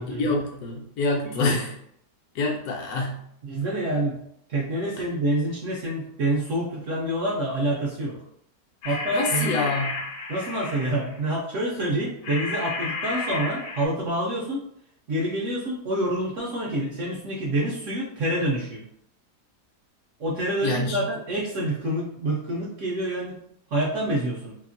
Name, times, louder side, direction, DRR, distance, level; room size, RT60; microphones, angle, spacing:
voice 1, 0.1-1.8 2.3-3.2 5.0-5.1 8.9-10.0 20.6-21.1, left 3 dB, 70° left, 1 dB, 1.0 m, -27 dB
voice 2, 3.4-4.2 4.5-8.2 8.8-9.5 10.3-14.6 15.1-18.9 20.2-23.4 23.7-24.6, right 1 dB, 65° right, -4 dB, 0.8 m, -27 dB
sound 1, 8.8-11.2 12.2-13.9, left 3 dB, 90° left, 1.2 m, -32 dB
2.9 x 2.4 x 2.5 m, 0.70 s
omnidirectional pair, 1.8 m